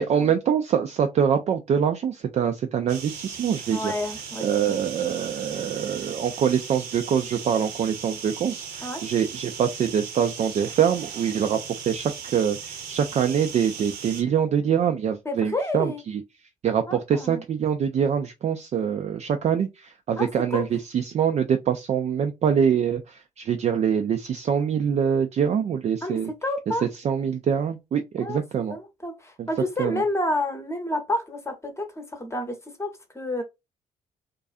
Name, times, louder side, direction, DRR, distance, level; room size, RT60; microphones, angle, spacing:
voice 1, 0.0-3.9 4.4-16.2 16.6-26.3 27.0-28.7 29.4-29.5 29.8-30.0, right 8 dB, 40° right, 0.4 m, -24 dB
sound 1, 2.9-14.2, right 6 dB, 65° right, 0.8 m, -38 dB
voice 2, 3.7-4.8 8.8-9.0 15.2-16.0 16.9-17.4 20.2-20.6 26.0-26.8 28.2-28.4 28.7-33.4, left 1 dB, 15° left, 0.8 m, -30 dB
2.4 x 2.3 x 2.4 m
hypercardioid pair, 45°, 18 cm